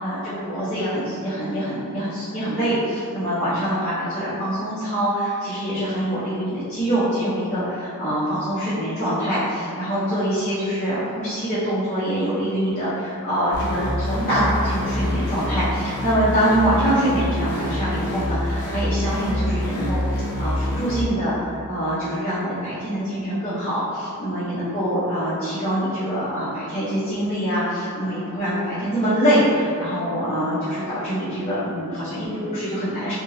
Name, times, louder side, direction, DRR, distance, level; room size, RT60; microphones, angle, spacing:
voice 1, 0.0-33.1, equal, 30° left, -15 dB, 0.8 m, -24 dB
sound 1, 13.5-21.0, left 1 dB, 80° left, 0.7 m, -26 dB
3.5 x 2.8 x 2.6 m, 2.4 s
head